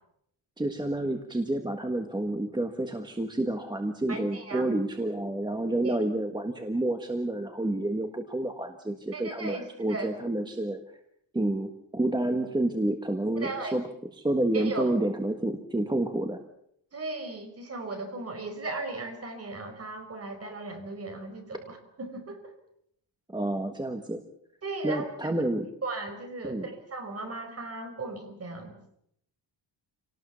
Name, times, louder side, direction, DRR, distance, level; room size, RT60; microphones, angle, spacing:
voice 1, 0.6-10.8 11.3-13.8 14.1-16.4 23.3-24.2 24.8-25.7 26.4-26.7, right 1 dB, 10° right, 6 dB, 1.5 m, -29 dB
voice 2, 4.1-4.8 5.8-6.0 9.1-10.1 13.4-13.7 14.5-15.0 16.9-22.5 24.6-25.4 25.8-28.8, right 3 dB, 35° right, 5 dB, 5.1 m, -37 dB
27.5 x 18.5 x 7.1 m, 0.72 s
wide cardioid pair, 155°, 44 cm